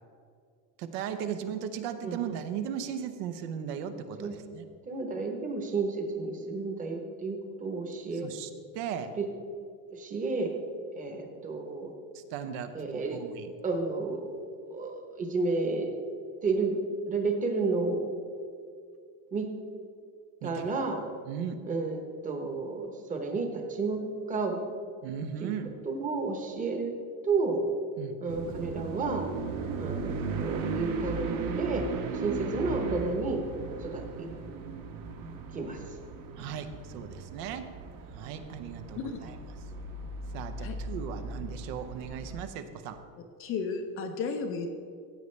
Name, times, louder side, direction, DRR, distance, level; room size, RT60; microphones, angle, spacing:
voice 1, 0.8-4.6 8.2-8.5 8.7-9.1 12.1-13.5 20.4-20.7 21.3-21.6 25.0-25.7 28.0-28.1 36.4-37.7 38.1-39.4 40.3-43.0, right 8 dB, 90° right, 8 dB, 1.0 m, -37 dB
voice 2, 4.8-8.3 9.2-9.3 9.9-10.5 11.0-11.9 12.7-13.2 13.6-14.4 14.7-15.9 16.4-16.8 17.1-18.0 19.3-19.5 20.4-21.0 21.6-24.0 24.3-24.6 25.4-25.5 25.8-26.9 27.2-27.6 28.2-29.3 29.8-31.8 32.2-33.4 33.8-34.3 35.5-35.8, right 3 dB, 15° right, 4 dB, 0.9 m, -31 dB
sound 1, 28.3-42.4, right 4 dB, 45° right, 1.0 m, -37 dB
voice 3, 43.4-44.7, left 5 dB, 30° left, 5 dB, 0.4 m, -33 dB
15.0 x 8.1 x 3.2 m, 2.3 s
cardioid pair, 175°, 47 cm